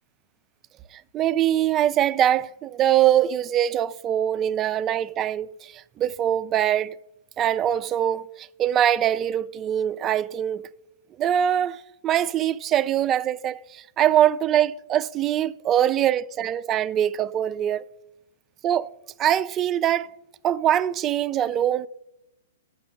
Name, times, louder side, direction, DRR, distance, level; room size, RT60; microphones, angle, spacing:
voice 1, 0.9-7.0 7.4-10.7 11.2-17.8 18.6-18.9 19.2-20.1 20.4-21.9, right 11 dB, 25° right, 0.3 m, -23 dB
6.9 x 5.2 x 6.8 m
hypercardioid pair, 130°, 0 cm